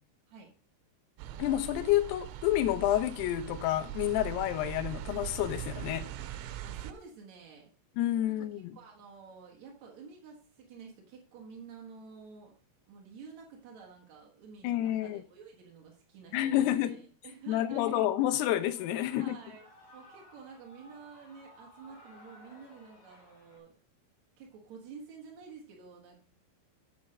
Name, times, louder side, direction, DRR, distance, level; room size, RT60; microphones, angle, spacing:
sound 1, 1.2-6.9, right 12 dB, 85° right, 3.1 m, -41 dB
voice 1, 1.4-6.1 8.0-8.8 14.6-15.2 16.3-17.0 17.5-19.4, left 13 dB, 80° left, 2.4 m, -29 dB
voice 2, 6.6-7.7 8.3-8.5 8.7-12.6 12.9-18.1 19.1-19.6 19.9-23.7 24.4-26.2, right 5 dB, 70° right, 1.7 m, -50 dB
Shout / Cheering, 18.2-23.6, left 1 dB, 40° left, 2.9 m, -57 dB
8.8 x 7.2 x 5.0 m
omnidirectional pair, 5.6 m